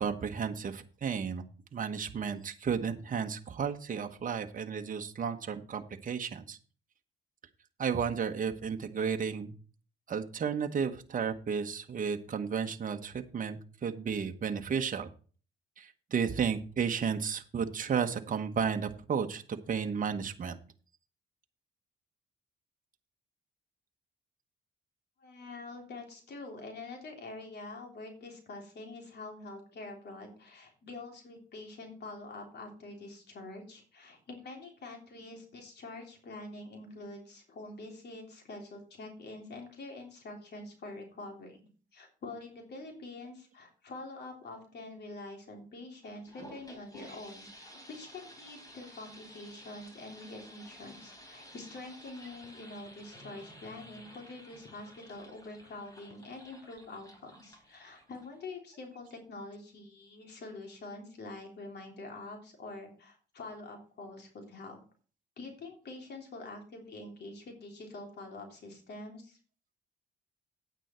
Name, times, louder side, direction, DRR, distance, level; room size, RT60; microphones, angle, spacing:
voice 1, 0.0-1.5 1.7-6.6 7.8-9.5 10.1-15.1 15.8-20.6, right 6 dB, 45° right, 5 dB, 1.2 m, -33 dB
voice 2, 25.2-41.6 41.9-64.8 65.4-69.4, left 2 dB, 60° left, 2 dB, 3.2 m, -46 dB
sound 1, 46.0-58.5, equal, 20° left, 3.7 m, -53 dB
9.2 x 9.0 x 4.4 m, 0.40 s
cardioid pair, 90°, 20 cm